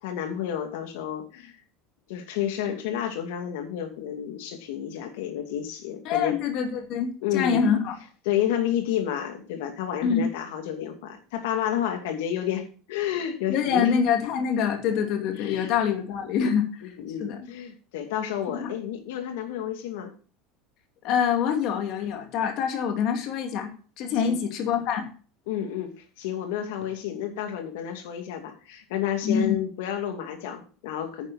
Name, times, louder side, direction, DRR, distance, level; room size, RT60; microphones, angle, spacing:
voice 1, 0.0-1.6 2.1-6.4 7.2-7.7 8.2-13.9 15.4-15.7 16.4-16.5 16.8-20.1 24.2-24.4 25.5-31.3, left 10 dB, 85° left, 5 dB, 2.4 m, -30 dB
voice 2, 6.0-7.9 10.0-10.2 13.5-16.6 17.2-17.5 18.5-18.7 21.0-23.7 24.0-25.0 29.2-29.6, left 7 dB, 45° left, 4 dB, 2.5 m, -25 dB
10.0 x 9.7 x 4.3 m, 0.38 s
cardioid pair, 165°, 0 cm